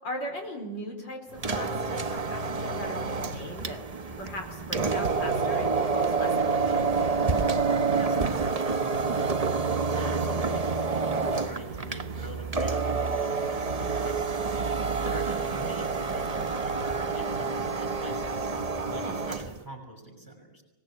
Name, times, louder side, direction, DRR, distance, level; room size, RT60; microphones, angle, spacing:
voice 1, 0.0-3.8 4.2-6.9 19.0-19.2, equal, 85° left, 2 dB, 5.1 m, -39 dB
sound 1, 1.3-19.6, right 4 dB, 30° right, 0.8 m, -28 dB
voice 2, 7.5-20.6, right 1 dB, 10° left, 3 dB, 6.0 m, -43 dB
24.5 x 19.5 x 8.7 m, 0.99 s
omnidirectional pair, 1.9 m